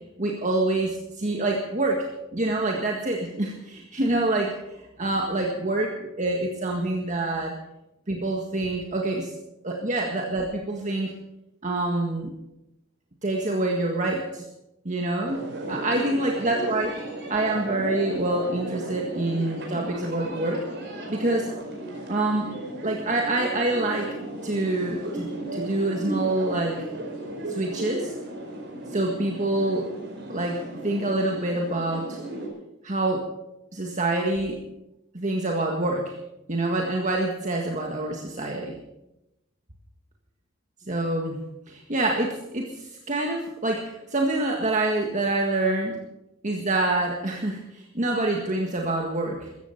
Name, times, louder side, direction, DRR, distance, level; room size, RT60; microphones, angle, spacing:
voice 1, 0.2-2.1 2.3-4.6 5.0-5.9 6.2-7.5 8.1-9.3 9.6-11.2 11.6-12.3 13.2-14.4 14.9-15.4 15.7-16.9 17.3-20.6 21.1-21.5 22.1-22.5 22.8-24.1 24.4-26.8 27.5-28.1 28.9-29.9 30.3-32.2 32.8-33.3 33.7-34.6 35.1-36.2 36.5-38.8 40.9-41.4 41.7-46.0 46.4-49.5, right 2 dB, 35° right, 1 dB, 1.7 m, -26 dB
sound 1, 15.3-32.5, right 1 dB, 55° right, 4.8 m, -35 dB
15.0 x 14.5 x 5.8 m, 0.90 s
head